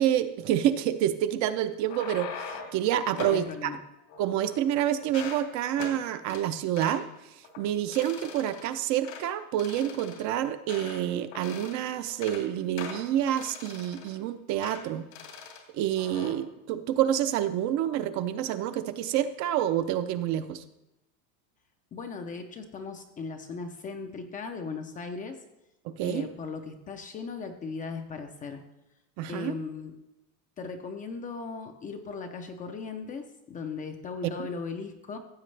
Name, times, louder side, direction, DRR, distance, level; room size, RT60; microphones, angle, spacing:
voice 1, 0.0-3.8 4.2-15.1 15.7-20.6 25.8-26.3 29.2-29.5, right 11 dB, 40° right, 10 dB, 0.5 m, -28 dB
sound 1, 1.7-2.8 3.2-3.4 4.1-4.7 5.0-5.4 5.8-6.0 6.3-6.4 6.8-7.0 7.4-7.6 7.9-8.7 9.0-9.2 9.6-11.0 11.3-11.8 12.1-12.4 12.8-14.2 14.6-14.8 15.1-15.6 16.0-16.3, left 5 dB, 80° left, 2.6 m, -41 dB
voice 2, 3.3-3.8 21.9-25.4 26.0-28.6 29.3-30.0 30.6-35.2, left 4 dB, 20° left, 6 dB, 0.4 m, -38 dB
15.0 x 7.5 x 3.3 m, 0.91 s
supercardioid pair, 150°, 44 cm